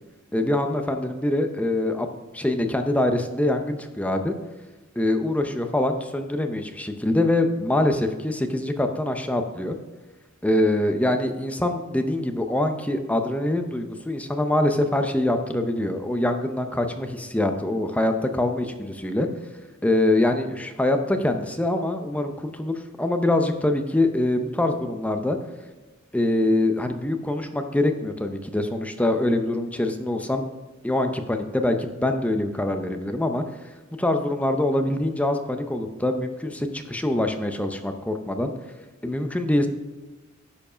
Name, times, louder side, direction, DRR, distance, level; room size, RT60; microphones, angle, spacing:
voice 1, 0.3-2.1 2.3-4.3 5.0-9.8 10.4-19.3 19.8-25.4 26.1-30.4 30.8-33.4 34.0-38.5 39.0-39.7, left 1 dB, 5° left, 6 dB, 0.6 m, -24 dB
10.5 x 4.7 x 5.0 m, 1.2 s
head